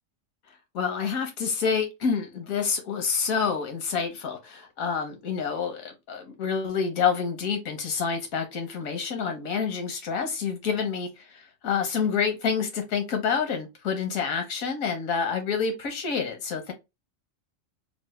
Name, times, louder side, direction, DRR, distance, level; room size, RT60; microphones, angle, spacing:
voice 1, 0.5-16.7, left 6 dB, 80° left, 1.2 m, -28 dB
3.1 x 2.0 x 3.0 m
omnidirectional pair, 1.4 m